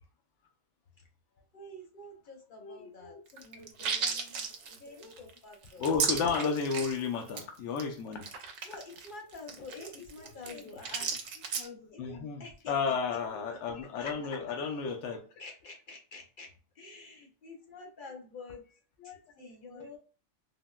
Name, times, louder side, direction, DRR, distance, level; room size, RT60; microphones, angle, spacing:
voice 1, 1.5-3.2 3.4-4.4 4.8-5.8 8.7-11.1 11.9-12.7 14.0-14.1 15.4-16.5 16.8-18.6 19.4-20.0, left 3 dB, 55° left, 2 dB, 0.6 m, -48 dB
voice 2, 2.6-4.2 5.0-5.1 5.8-8.3 9.8-9.9 10.5-10.8 11.6-15.2 19.0-19.9, left 5 dB, 85° left, 3 dB, 0.9 m, -34 dB
sound 1, 3.3-7.0 7.3-7.4 7.8-7.9 8.1-11.7, right 6 dB, 75° right, 0.9 m, -35 dB
3.6 x 2.0 x 2.3 m, 0.38 s
omnidirectional pair, 1.2 m